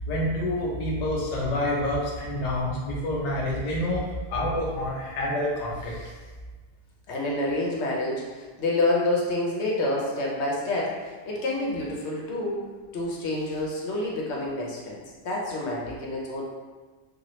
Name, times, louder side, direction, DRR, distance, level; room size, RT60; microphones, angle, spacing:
voice 1, 0.1-4.0 4.3-6.1, left 1 dB, 45° left, -4 dB, 0.6 m, -28 dB
voice 2, 7.1-12.6 12.9-15.0 15.2-16.4, left 2 dB, 80° left, -3 dB, 0.9 m, -28 dB
2.8 x 2.4 x 3.0 m, 1.4 s
omnidirectional pair, 1.1 m